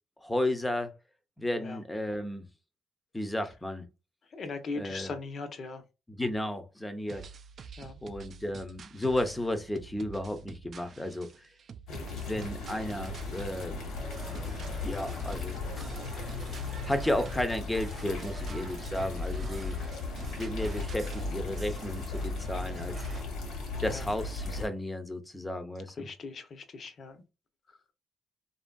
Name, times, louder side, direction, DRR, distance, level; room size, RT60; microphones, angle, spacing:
voice 1, 0.2-0.9 1.4-2.5 3.1-3.9 4.8-5.1 6.1-7.3 8.0-11.5 11.9-13.8 14.8-16.2 16.7-19.8 20.4-23.1 23.8-26.1, left 1 dB, 10° left, 0.6 m, -33 dB
voice 2, 4.3-5.8 7.8-8.0 11.9-12.4 14.3-14.6 23.9-24.0 26.0-27.2, left 4 dB, 50° left, 0.6 m, -40 dB
sound 1, 7.1-21.3, right 6 dB, 50° right, 0.3 m, -49 dB
sound 2, 11.9-24.7, left 3 dB, 75° left, 1.2 m, -36 dB
sound 3, 13.9-23.2, right 3 dB, 35° right, 0.9 m, -50 dB
2.8 x 2.6 x 2.2 m
cardioid pair, 90°, 0 cm